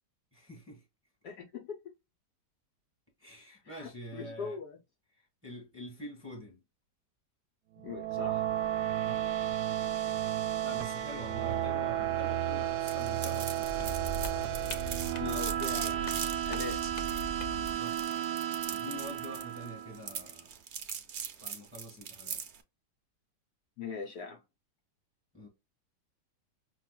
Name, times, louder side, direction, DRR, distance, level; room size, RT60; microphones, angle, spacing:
voice 1, 0.3-0.8 3.2-4.6 5.4-6.6 9.1-9.3 10.6-14.0 17.5-18.2 18.7-20.5 21.4-22.4 25.3-25.5, equal, 10° right, 1.2 m, -46 dB
voice 2, 1.2-1.8 3.6-4.8 7.8-8.5 15.2-16.8 23.8-24.4, left 5 dB, 65° left, 1.2 m, -41 dB
sound 1, 7.8-20.1, right 11 dB, 75° right, 1.1 m, -33 dB
sound 2, 12.9-22.6, right 7 dB, 60° right, 0.7 m, -41 dB
sound 3, 13.6-17.7, right 1 dB, 50° left, 0.4 m, -41 dB
5.8 x 2.3 x 2.2 m
omnidirectional pair, 1.9 m